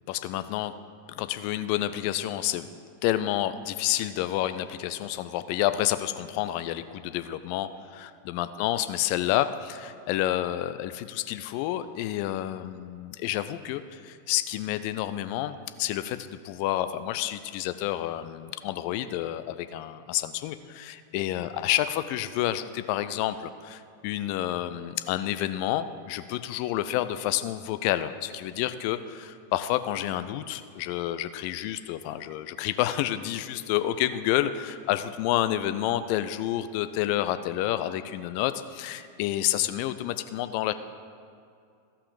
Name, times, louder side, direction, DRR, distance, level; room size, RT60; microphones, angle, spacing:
voice 1, 0.1-0.7 1.1-2.7 3.0-40.7, left 13 dB, 45° left, 12 dB, 0.5 m, -29 dB
14.5 x 5.7 x 5.0 m, 2.4 s
figure-of-eight pair, 90°, 0 cm